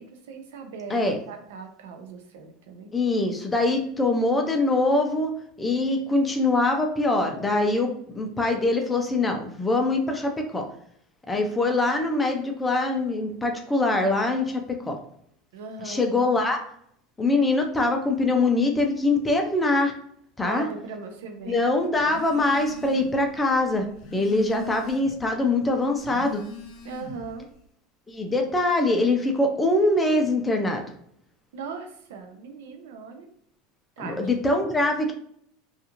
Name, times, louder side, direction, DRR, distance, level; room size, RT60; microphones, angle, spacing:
voice 1, 0.0-1.0 1.3-2.9 11.3-11.4 15.5-16.0 20.4-21.6 24.4-24.6 26.8-27.5 31.5-33.3 34.0-34.4, right 5 dB, 90° right, 5 dB, 0.5 m, -39 dB
voice 2, 2.9-5.3 5.6-10.6 11.3-15.0 15.8-16.6 17.2-19.9 20.4-20.7 21.5-23.9 24.1-26.4 28.1-30.8 34.0-35.1, left 2 dB, 10° left, 3 dB, 0.4 m, -23 dB
Telephone, 22.0-23.2 23.6-25.3 25.9-27.4, left 6 dB, 60° left, 0.5 m, -40 dB
2.4 x 2.3 x 2.9 m, 0.67 s
supercardioid pair, 140°, 0 cm